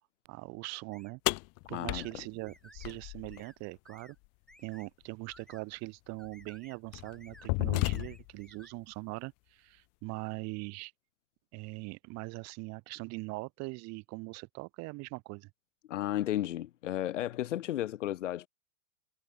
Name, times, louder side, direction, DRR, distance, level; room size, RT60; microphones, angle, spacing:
voice 1, 0.3-1.2 1.7-4.2 4.6-10.9 11.5-15.5, right 25 dB, 45° right, 1.9 m, -41 dB
sound 1, 0.9-1.1 2.0-2.1 2.5-3.0 3.3-3.6 3.8-4.2 4.5-4.9 5.3-5.6 6.2-6.8 7.0-7.5 7.8-8.7, left 1 dB, ahead, 7.6 m, -58 dB
sound 2, 1.3-3.4 5.3-5.4 6.2-6.4 6.9-8.4, left 32 dB, 40° left, 0.7 m, -33 dB
voice 2, 1.7-2.1 15.9-18.5, left 13 dB, 80° left, 0.8 m, -33 dB
hypercardioid pair, 105°, 36 cm